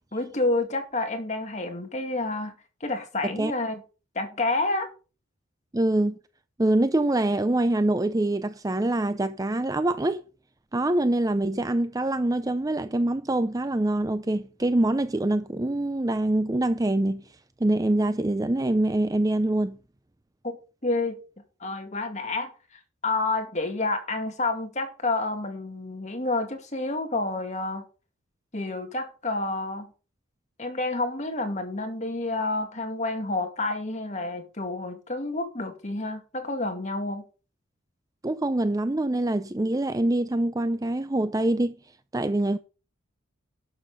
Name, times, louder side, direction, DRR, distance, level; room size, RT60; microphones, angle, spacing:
voice 1, 0.1-2.5 2.8-3.8 4.1-4.9 20.4-20.5 20.8-21.2 21.6-22.5 23.0-27.8 28.5-29.9 30.6-37.2, left 2 dB, 35° left, 2.3 m, -29 dB
voice 2, 5.7-6.2 6.6-10.2 10.7-17.2 17.6-19.8 38.2-41.7 42.1-42.6, right 1 dB, 15° right, 0.5 m, -25 dB
11.5 x 7.0 x 5.6 m
head